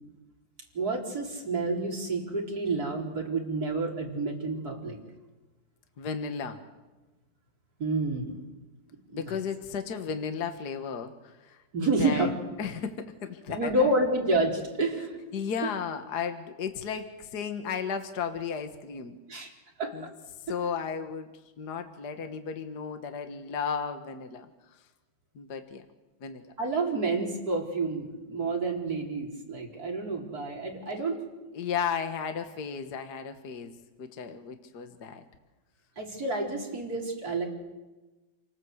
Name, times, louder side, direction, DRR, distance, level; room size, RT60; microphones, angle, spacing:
voice 1, 0.7-5.0 7.8-8.4 9.1-9.4 11.7-12.3 13.5-15.2 15.6-15.7 19.3-19.5 19.8-19.9 26.6-31.2 36.0-37.5, right 2 dB, 40° right, 0 dB, 4.8 m, -29 dB
voice 2, 6.0-6.6 9.1-12.3 12.6-14.0 15.3-19.2 19.9-20.1 20.5-21.3 21.6-24.5 25.4-25.9 26.2-26.4 31.5-33.7 34.0-35.2, left 6 dB, 50° left, 7 dB, 1.9 m, -34 dB
28.5 x 19.0 x 8.1 m, 1.1 s
omnidirectional pair, 2.4 m